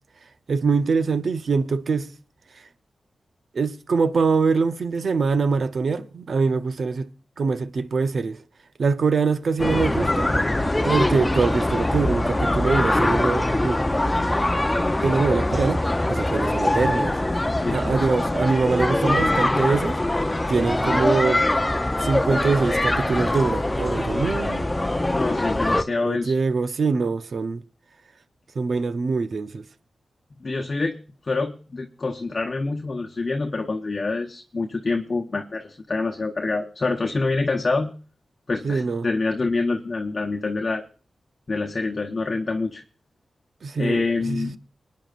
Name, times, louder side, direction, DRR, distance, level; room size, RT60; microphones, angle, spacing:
voice 1, 0.5-2.1 3.5-7.1 7.4-8.4 8.8-10.4 10.8-13.8 15.0-17.4 17.7-20.0 20.5-21.4 22.0-24.7 26.0-27.6 28.6-29.6 38.6-39.1 43.6-44.5, right 4 dB, 70° right, 0.7 m, -23 dB
sound 1, 9.6-25.8, left 1 dB, 20° left, 0.6 m, -23 dB
voice 2, 17.5-18.0 25.1-26.3 30.4-31.0 31.2-37.9 38.5-40.8 41.5-42.8 43.8-44.6, left 3 dB, 45° left, 1.0 m, -26 dB
25.5 x 9.4 x 2.5 m
cardioid pair, 60°, 0 cm